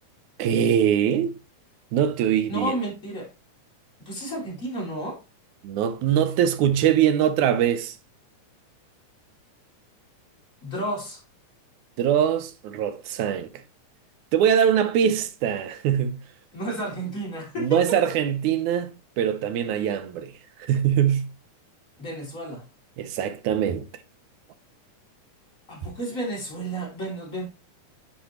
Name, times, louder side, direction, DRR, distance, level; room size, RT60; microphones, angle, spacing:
voice 1, 0.4-1.3 1.9-2.7 5.6-8.0 12.0-13.5 14.3-16.2 17.6-20.3 20.6-21.3 23.0-23.9, right 9 dB, 75° right, 2.1 m, -22 dB
voice 2, 2.5-3.3 4.0-5.2 10.6-11.2 16.5-18.1 22.0-22.7 25.7-27.5, right 1 dB, 25° left, 3.0 m, -31 dB
10.0 x 4.8 x 3.0 m
omnidirectional pair, 3.6 m